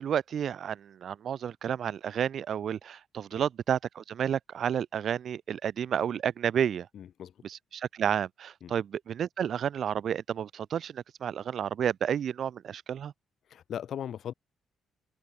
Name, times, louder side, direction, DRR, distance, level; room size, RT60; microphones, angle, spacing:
voice 1, 0.0-6.9 7.4-13.1, right 8 dB, 60° right, 0.5 m, -31 dB
voice 2, 6.9-7.3 8.6-8.8 13.5-14.3, left 9 dB, 65° left, 4.6 m, -38 dB
cardioid pair, 90°, 0 cm